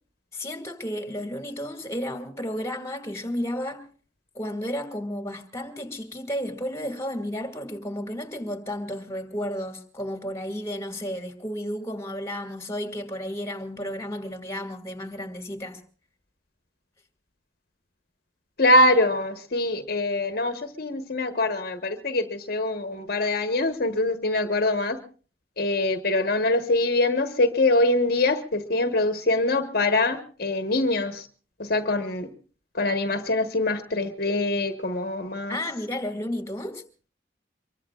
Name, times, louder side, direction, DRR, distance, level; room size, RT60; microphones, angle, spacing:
voice 1, 0.3-3.8 4.3-15.8 35.5-36.8, equal, 15° left, 2.2 m, -32 dB
voice 2, 18.6-25.0 25.6-31.3 31.6-32.3 32.7-35.6, left 2 dB, 55° left, 1.3 m, -24 dB
24.5 x 23.0 x 2.4 m
head